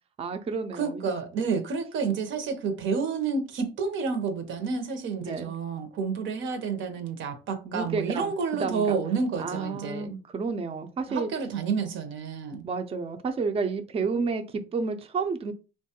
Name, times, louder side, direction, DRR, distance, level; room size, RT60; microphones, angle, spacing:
voice 1, 0.2-1.1 5.2-5.5 7.6-8.3 8.6-9.0 9.4-11.3 12.6-14.4 14.7-15.5, right 4 dB, 30° right, 0.4 m, -30 dB
voice 2, 0.7-10.1 11.1-12.6, right 5 dB, 75° right, 0.7 m, -30 dB
3.0 x 2.2 x 2.8 m
cardioid pair, 90°, 20 cm